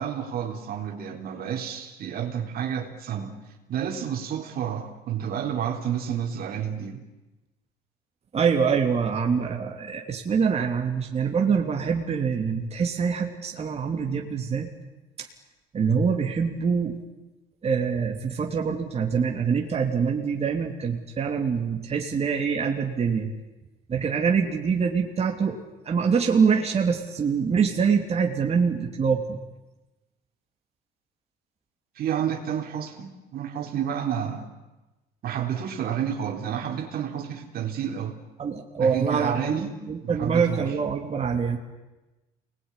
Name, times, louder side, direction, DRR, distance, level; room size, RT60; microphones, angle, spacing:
voice 1, 0.0-3.4 3.7-7.0 32.0-34.5 35.2-38.2 38.8-39.8 40.0-40.7, right 9 dB, 65° right, 3 dB, 3.9 m, -30 dB
voice 2, 8.3-14.7 15.2-15.3 15.7-17.0 17.6-23.3 23.9-25.6 25.8-29.4 38.4-41.6, right 6 dB, 40° right, 2 dB, 3.1 m, -25 dB
28.0 x 20.5 x 10.0 m, 1.1 s
cardioid pair, 110°, 17 cm